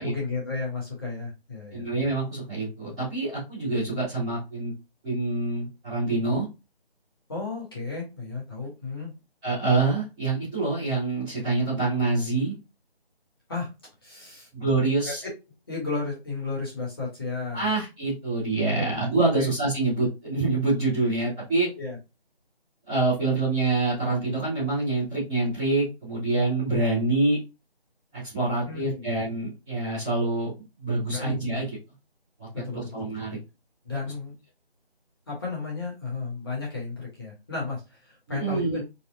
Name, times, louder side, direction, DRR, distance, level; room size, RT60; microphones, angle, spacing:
voice 1, 0.0-1.9 7.3-9.2 13.5-13.7 14.0-14.5 15.0-15.3 15.7-17.7 18.7-19.0 19.3-19.5 21.0-21.1 21.8-22.0 28.6-29.1 31.1-31.6 32.5-33.1 33.8-34.3 35.3-38.8, left 4 dB, 25° left, -4 dB, 1.1 m, -33 dB
voice 2, 1.7-4.7 5.0-6.4 9.4-12.5 14.5-15.2 17.5-21.7 22.9-27.4 28.1-30.5 30.8-31.7 32.4-32.5 32.7-33.4 38.3-38.8, right 2 dB, 5° right, -18 dB, 0.8 m, -26 dB
4.0 x 2.1 x 2.7 m, 0.25 s
figure-of-eight pair, 160°, 31 cm